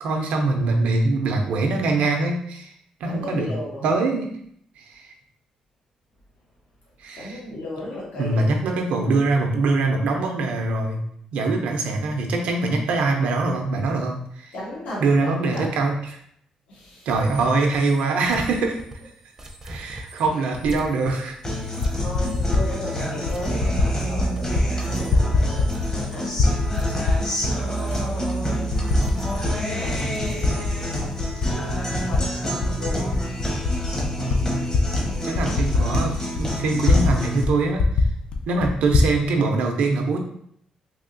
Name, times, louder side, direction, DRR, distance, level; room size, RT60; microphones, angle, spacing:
voice 1, 0.0-2.7 3.0-3.5 3.8-4.3 4.8-5.1 7.0-7.4 8.2-11.0 11.3-14.5 15.0-16.0 17.1-18.7 19.6-21.4 34.2-34.6 35.2-38.1 38.5-40.2, right 3 dB, 85° right, 3 dB, 0.5 m, -23 dB
voice 2, 3.0-3.9 7.1-8.5 14.5-15.7 16.7-17.1 20.4-20.5 21.5-26.4 27.9-28.0 29.4-30.7 31.9-33.1 35.0-35.4, left 1 dB, 75° left, -6 dB, 1.1 m, -35 dB
sound 1, 17.1-24.1 24.4-30.9, right 1 dB, 20° right, 0.4 m, -40 dB
Typing, 20.6-20.8 21.6-22.7 23.2-23.9 24.1-24.7 24.9-26.0 26.3-27.5 28.0-28.1 28.7-29.5 29.8-32.2 32.6-37.2 37.4-37.5 37.8-39.1, left 3 dB, 55° left, 0.4 m, -22 dB
Guitar, 21.4-37.4, equal, 30° left, 0.8 m, -28 dB
3.4 x 2.8 x 2.6 m, 0.68 s
cardioid pair, 110°, 2 cm